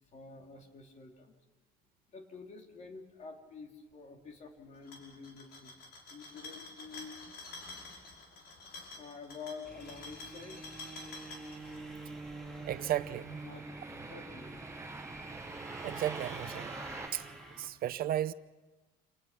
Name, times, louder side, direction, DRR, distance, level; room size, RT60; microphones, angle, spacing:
voice 1, 0.1-1.3 2.1-5.8 6.1-7.2 8.9-10.8 13.4-14.7, left 4 dB, 45° left, 3.2 m, -49 dB
sound 1, 4.7-11.8, left 3 dB, 75° left, 5.5 m, -49 dB
sound 2, 9.6-17.7, right 2 dB, 5° left, 3.8 m, -47 dB
sound 3, 10.4-17.1, right 3 dB, 15° right, 1.1 m, -47 dB
voice 2, 12.6-13.4 15.8-16.7 17.1-17.2 17.6-18.3, right 12 dB, 60° right, 0.7 m, -34 dB
27.5 x 18.5 x 6.0 m
cardioid pair, 110°, 17 cm